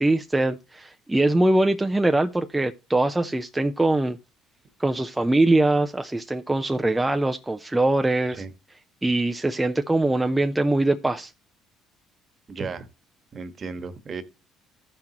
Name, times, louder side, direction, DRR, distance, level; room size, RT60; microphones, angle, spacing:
voice 1, 0.0-4.2 4.8-8.4 9.0-11.3, right 2 dB, 10° right, 0.6 m, -22 dB
voice 2, 12.5-12.9 13.3-14.2, right 4 dB, 40° right, 1.4 m, -34 dB
14.5 x 5.9 x 2.9 m
supercardioid pair, 75°, 0 cm